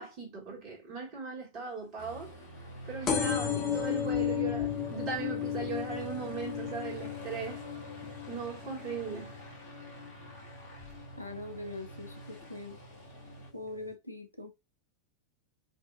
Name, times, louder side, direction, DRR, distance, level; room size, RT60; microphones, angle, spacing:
voice 1, 0.0-2.3 2.9-7.6 8.3-9.3, right 5 dB, 40° right, 1.8 m, -38 dB
Aircraft, 2.0-13.5, right 1 dB, 45° left, 1.5 m, -47 dB
sound 1, 3.1-10.3 10.8-11.2 12.1-12.2 12.4-12.5 12.7-12.8, left 9 dB, 30° left, 0.7 m, -34 dB
voice 2, 11.2-12.8 13.5-14.5, left 2 dB, 85° left, 0.6 m, -42 dB
4.2 x 2.5 x 2.4 m
figure-of-eight pair, 90°, 0 cm